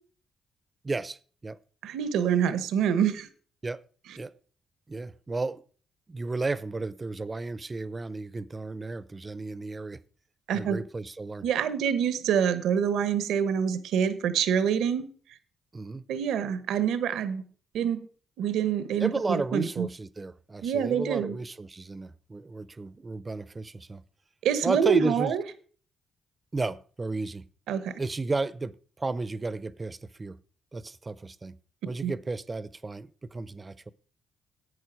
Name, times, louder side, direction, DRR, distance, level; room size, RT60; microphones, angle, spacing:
voice 1, 0.8-1.6 3.6-3.8 4.2-4.3 4.9-5.6 6.1-10.0 10.5-11.5 15.7-16.0 19.0-24.0 24.6-25.3 26.5-27.5 28.0-30.4 30.7-31.6 31.8-33.9, right 3 dB, 25° right, 0.6 m, -33 dB
voice 2, 1.8-3.3 10.5-10.8 11.4-15.1 16.1-17.4 17.7-18.1 18.4-19.9 20.6-21.4 24.4-25.4 27.7-28.0 32.0-32.1, right 8 dB, 80° right, 1.1 m, -26 dB
11.0 x 8.5 x 4.7 m
cardioid pair, 90°, 0 cm